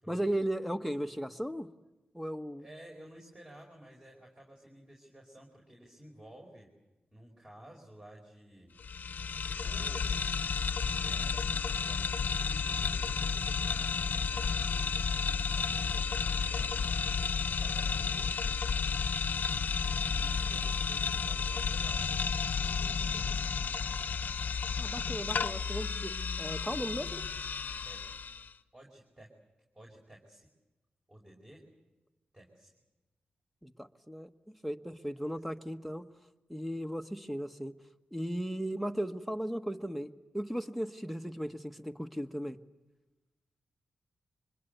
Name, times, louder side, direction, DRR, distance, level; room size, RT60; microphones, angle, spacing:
voice 1, 0.1-1.7 2.1-2.6 24.8-27.2 33.6-34.3 34.6-36.0 36.5-37.7 38.1-42.6, equal, ahead, 7 dB, 1.4 m, -36 dB
voice 2, 2.6-6.7 7.1-8.8 9.3-10.2 10.9-18.6 19.6-22.0 22.5-23.7 27.8-28.0 28.7-29.3 29.7-30.5 31.1-31.7 32.3-32.7, right 1 dB, 20° right, -1 dB, 5.2 m, -54 dB
sound 1, 8.8-28.5, left 5 dB, 65° left, 0.9 m, -32 dB
25.5 x 21.5 x 8.2 m, 1.1 s
cardioid pair, 55°, 3 cm